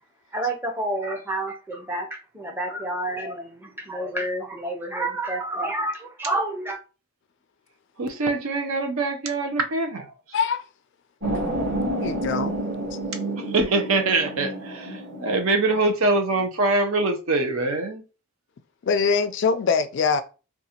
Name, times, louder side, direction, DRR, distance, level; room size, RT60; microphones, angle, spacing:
voice 1, 0.3-6.8, right 1 dB, 10° right, 0.6 m, -29 dB
voice 2, 8.0-10.1 13.4-18.0, right 3 dB, 75° right, 0.6 m, -24 dB
voice 3, 10.3-10.6 12.0-12.6 12.9-13.0 18.8-20.2, left 5 dB, 55° left, 0.3 m, -23 dB
sound 1, 11.2-16.2, right 1 dB, 50° right, 1.8 m, -29 dB
3.7 x 2.3 x 2.8 m
head